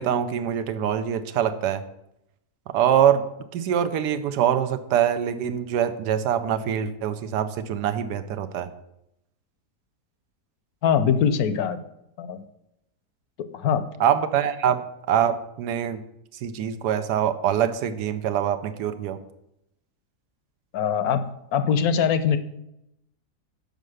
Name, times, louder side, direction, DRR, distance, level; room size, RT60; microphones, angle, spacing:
voice 1, 0.0-1.8 2.7-3.2 3.5-8.7 14.0-14.8 15.1-16.0 16.4-19.2, right 9 dB, 90° right, 11 dB, 1.2 m, -24 dB
voice 2, 10.8-11.8 12.2-12.4 13.5-13.9 20.7-21.2 21.5-22.4, left 7 dB, 70° left, 11 dB, 1.1 m, -22 dB
6.6 x 5.2 x 6.4 m, 0.82 s
omnidirectional pair, 1.7 m